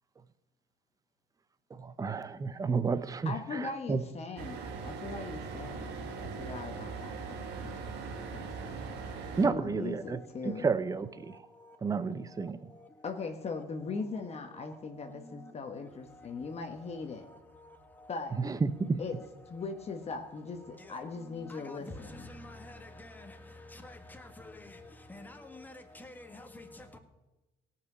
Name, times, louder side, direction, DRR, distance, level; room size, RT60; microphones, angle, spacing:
voice 1, 1.7-4.0 9.4-10.2 10.6-11.4 11.8-12.6 18.4-19.0, right 4 dB, 20° right, 0.6 m, -31 dB
voice 2, 3.2-4.6 4.8-7.4 8.3-8.5 9.4-10.7 13.0-17.3 18.1-18.4 19.0-19.1 19.5-22.3, left 4 dB, 40° left, 1.3 m, -39 dB
sound 1, 4.4-9.5, right 4 dB, 85° right, 1.6 m, -40 dB
voice 3, 9.9-10.6 11.2-13.3 13.5-13.6 14.2-18.1 18.4-19.6 20.3-27.0, left 2 dB, 10° left, 1.5 m, -51 dB
17.5 x 5.8 x 6.1 m
cardioid pair, 110°, 17 cm